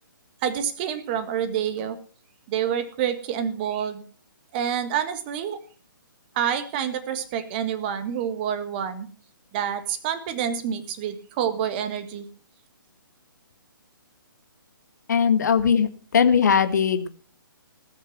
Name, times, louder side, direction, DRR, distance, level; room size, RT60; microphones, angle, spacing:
voice 1, 0.4-2.0 2.5-4.0 4.5-5.6 6.3-9.1 9.5-12.3, right 9 dB, 25° right, 11 dB, 1.7 m, -27 dB
voice 2, 15.1-17.1, left 7 dB, 55° left, 9 dB, 1.7 m, -20 dB
20.0 x 6.7 x 6.0 m, 0.40 s
figure-of-eight pair, 135°, 11 cm